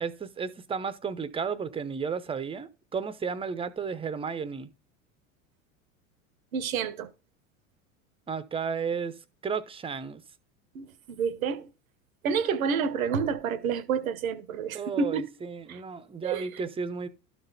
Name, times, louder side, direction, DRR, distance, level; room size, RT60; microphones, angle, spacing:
voice 1, 0.0-4.7 8.3-9.2 9.4-10.2 14.7-17.1, right 6 dB, 15° right, 0.6 m, -33 dB
voice 2, 6.5-7.1 10.7-11.7 12.2-15.2 15.7-15.8 16.2-16.6, right 6 dB, 85° right, 1.0 m, -29 dB
12.0 x 4.1 x 4.0 m
hypercardioid pair, 95°, 40 cm